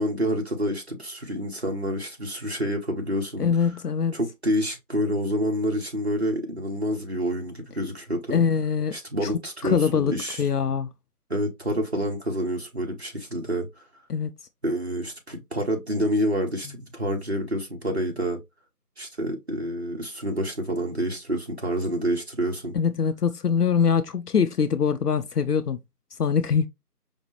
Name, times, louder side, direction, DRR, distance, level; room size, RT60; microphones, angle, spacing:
voice 1, 0.0-3.5 4.1-8.4 8.9-10.4 11.3-13.7 14.6-18.4 19.0-22.8, equal, 40° right, 0.9 m, -28 dB
voice 2, 3.4-4.1 8.3-8.9 9.2-9.3 9.6-10.1 10.4-10.9 14.1-14.3 22.7-25.8 26.2-26.7, left 6 dB, 75° left, 0.6 m, -23 dB
5.1 x 2.0 x 2.9 m
figure-of-eight pair, 175°, 47 cm